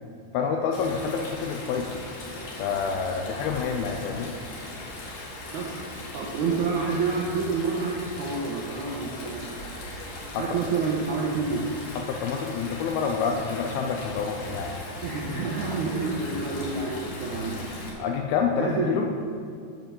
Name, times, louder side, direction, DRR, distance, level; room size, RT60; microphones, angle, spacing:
voice 1, 0.3-2.0 2.6-4.3 10.3-10.5 11.9-14.8 18.0-19.1, left 6 dB, 80° left, 3 dB, 2.3 m, -28 dB
Stream, 0.7-17.9, left 1 dB, 60° left, 3.4 m, -38 dB
voice 2, 6.1-9.6 10.4-11.6 15.0-17.9 18.6-18.9, right 4 dB, 75° right, -3 dB, 1.7 m, -28 dB
7.8 x 7.5 x 7.1 m, 2.4 s
omnidirectional pair, 4.9 m